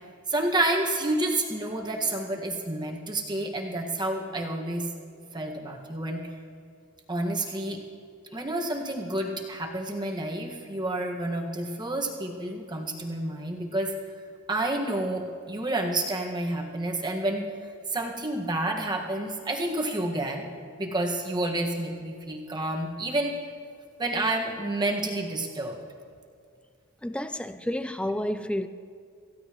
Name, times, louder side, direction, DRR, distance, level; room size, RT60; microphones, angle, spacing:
voice 1, 0.3-4.9 5.3-6.2 7.1-7.8 8.3-13.9 14.5-17.5 17.9-20.5 20.8-23.4 24.0-25.8, right 1 dB, 20° right, 1.8 m, -29 dB
voice 2, 27.0-28.7, left 1 dB, 5° left, 0.5 m, -30 dB
27.5 x 15.5 x 3.2 m
head